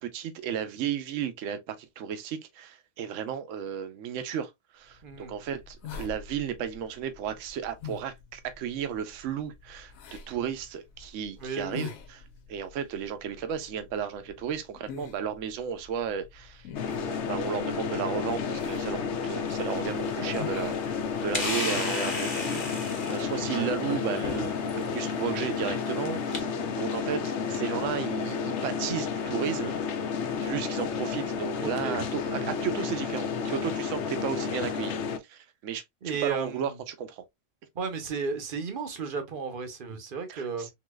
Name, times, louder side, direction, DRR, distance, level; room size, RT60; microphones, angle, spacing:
voice 1, 0.0-12.2 12.5-20.8 21.2-26.5 26.7-29.7 30.4-34.9 35.3-37.2 40.3-40.7, right 8 dB, 70° right, 1.0 m, -34 dB
sound 1, 4.9-21.5, left 7 dB, 80° left, 1.2 m, -46 dB
voice 2, 5.0-5.3 11.4-11.9 23.4-24.0 31.6-32.0 32.3-32.5 36.0-36.8 37.7-40.7, right 5 dB, 45° right, 0.8 m, -34 dB
sound 2, 16.8-35.2, left 6 dB, 65° left, 0.9 m, -31 dB
sound 3, 19.6-26.4, left 3 dB, 40° left, 1.0 m, -37 dB
3.8 x 2.8 x 2.2 m
omnidirectional pair, 1.4 m